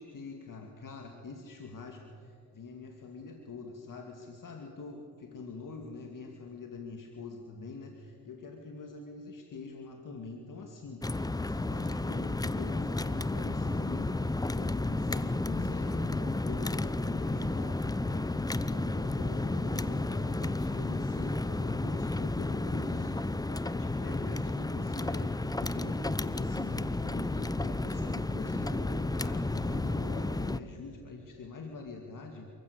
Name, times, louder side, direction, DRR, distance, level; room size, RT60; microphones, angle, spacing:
voice 1, 0.0-32.5, left 4 dB, 55° left, 3 dB, 2.3 m, -44 dB
sound 1, 11.0-30.6, left 2 dB, 10° left, 0.8 m, -32 dB
28.0 x 15.0 x 8.2 m, 2.4 s
cardioid pair, 65°, 38 cm